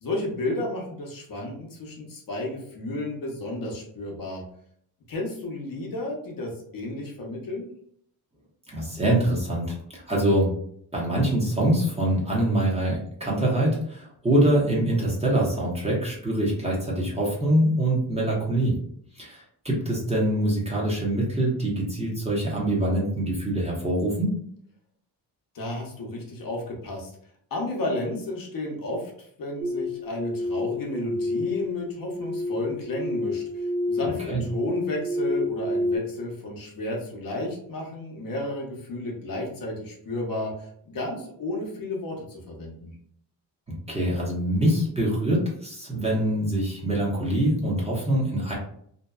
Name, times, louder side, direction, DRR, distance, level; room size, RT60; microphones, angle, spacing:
voice 1, 0.0-4.4 5.1-7.7 25.5-27.1 27.5-42.9, left 1 dB, 55° left, -1 dB, 0.8 m, -32 dB
voice 2, 8.7-10.5 10.9-18.7 19.2-24.4 34.3-34.4 43.9-48.5, right 1 dB, 15° right, -4 dB, 0.8 m, -24 dB
sound 1, 29.6-36.0, left 2 dB, 60° right, 0.6 m, -29 dB
2.7 x 2.2 x 2.2 m, 0.65 s
cardioid pair, 110°, 40 cm